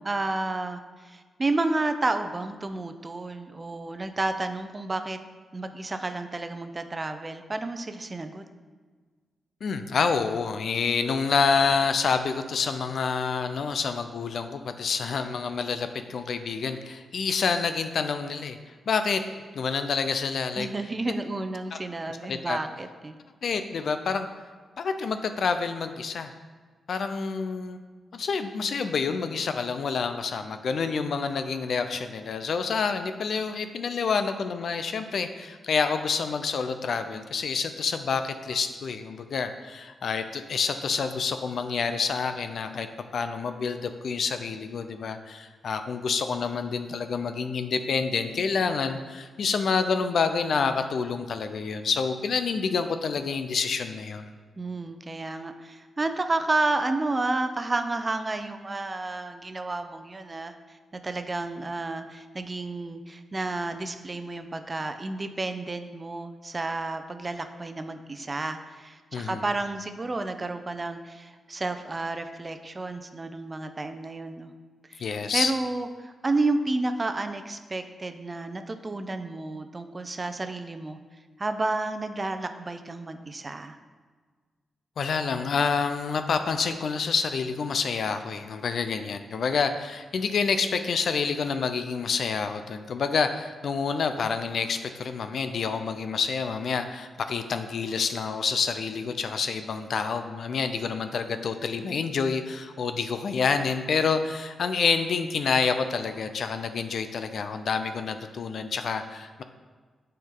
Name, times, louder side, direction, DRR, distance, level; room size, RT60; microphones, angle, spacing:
voice 1, 0.0-5.2 5.5-8.4 20.6-23.2 54.6-60.5 60.9-74.5 74.9-81.0 81.4-83.8, right 2 dB, 35° right, 8 dB, 0.6 m, -31 dB
voice 2, 9.6-18.6 18.9-19.2 19.5-20.7 21.7-21.8 22.1-22.6 23.4-24.3 24.8-26.3 26.9-27.8 28.1-42.9 43.1-54.3 69.1-69.4 75.0-75.5 85.0-109.4, left 5 dB, 70° left, 8 dB, 0.5 m, -28 dB
9.1 x 4.6 x 3.8 m, 1.5 s
cardioid pair, 60°, 0 cm